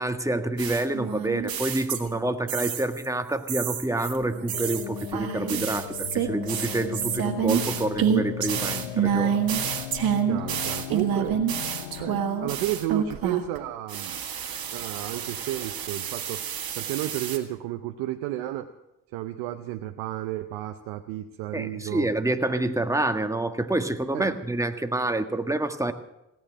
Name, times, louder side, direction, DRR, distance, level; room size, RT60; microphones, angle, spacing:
voice 1, 0.0-9.4 21.5-25.9, right 2 dB, 10° right, 7 dB, 1.6 m, -27 dB
sound 1, 0.6-2.2 2.5-3.1 3.5-13.6 13.9-17.4, right 8 dB, 65° right, 1.8 m, -28 dB
sound 2, 4.5-12.5, left 12 dB, 90° left, 0.9 m, -37 dB
voice 2, 10.3-11.4 12.0-14.2 14.7-16.4 16.8-18.7 19.1-22.1 24.1-24.3, right 13 dB, 90° right, 8 dB, 0.7 m, -32 dB
17.5 x 8.9 x 8.8 m, 0.89 s
hypercardioid pair, 45°, 37 cm